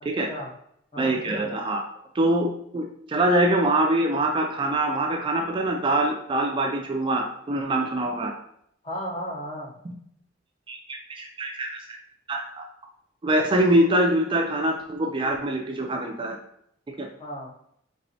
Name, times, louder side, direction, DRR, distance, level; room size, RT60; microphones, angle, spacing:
voice 1, 0.0-0.5 0.9-1.2 8.8-9.7 17.2-17.5, equal, 30° left, 0 dB, 0.7 m, -34 dB
voice 2, 1.0-1.8 2.1-8.3 10.7-11.8 12.3-12.7 13.2-16.4 17.0-17.1, right 1 dB, 25° right, 3 dB, 0.3 m, -24 dB
4.3 x 3.2 x 2.7 m, 0.70 s
head